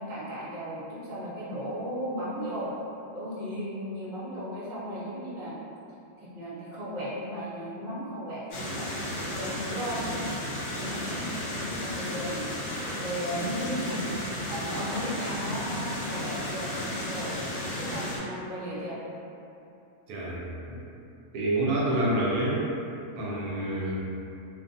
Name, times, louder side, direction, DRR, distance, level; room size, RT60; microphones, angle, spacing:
voice 1, 0.0-2.7 3.1-5.6 6.2-8.9 9.3-10.1 10.7-19.0, equal, 45° right, -9 dB, 0.7 m, -36 dB
sound 1, 8.5-18.2, left 1 dB, 85° left, 1.2 m, -33 dB
voice 2, 20.1-20.4 20.7-20.8 21.3-22.6 23.2-24.0, right 1 dB, 75° right, -6 dB, 1.0 m, -27 dB
2.5 x 2.4 x 2.6 m, 2.8 s
omnidirectional pair, 1.6 m